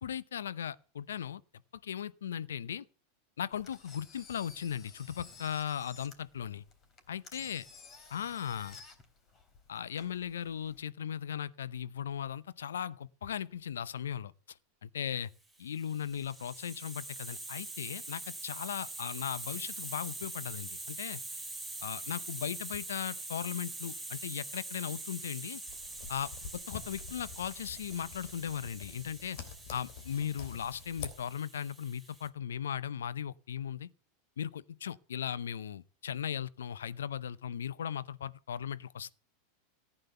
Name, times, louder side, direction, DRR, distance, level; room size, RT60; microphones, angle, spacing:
voice 1, 0.0-1.4 1.8-2.8 3.4-6.6 7.1-7.6 8.1-8.8 9.7-15.3 15.6-21.2 21.8-25.6 26.1-29.4 29.7-33.9 34.4-39.1, left 9 dB, 80° left, 0.6 m, -38 dB
Engine, 3.5-10.8, left 4 dB, 35° left, 3.2 m, -53 dB
Hiss, 15.6-32.3, right 2 dB, ahead, 2.5 m, -44 dB
sound 1, 25.7-31.1, left 7 dB, 60° left, 3.2 m, -47 dB
15.0 x 8.9 x 6.8 m
hypercardioid pair, 100°, 0 cm